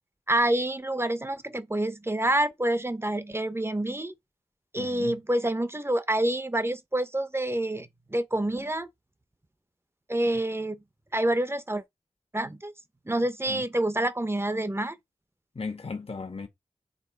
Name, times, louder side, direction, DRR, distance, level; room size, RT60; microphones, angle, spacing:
voice 1, 0.3-4.1 4.7-8.9 10.1-10.8 11.1-11.8 12.3-12.7 13.1-15.0, right 1 dB, 20° right, 0.9 m, -27 dB
voice 2, 4.8-5.2 13.5-13.6 15.5-16.5, left 4 dB, 50° left, 1.3 m, -36 dB
8.3 x 3.3 x 4.6 m
wide cardioid pair, 60°, 12 cm